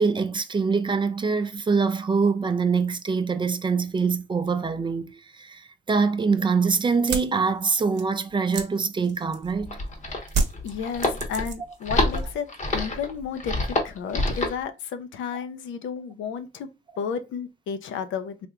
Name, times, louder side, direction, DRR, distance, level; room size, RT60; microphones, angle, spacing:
voice 1, 0.0-9.8, right 5 dB, 25° right, 0.4 m, -24 dB
sound 1, 6.9-9.7 10.3-11.8 12.1-12.7, right 4 dB, 60° right, 0.8 m, -30 dB
sound 2, 9.4-14.6, left 2 dB, 40° left, 0.9 m, -27 dB
voice 2, 10.6-12.5 12.7-16.7 17.0-18.5, left 7 dB, 75° left, 0.6 m, -32 dB
3.4 x 2.8 x 2.4 m
cardioid pair, 90°, 20 cm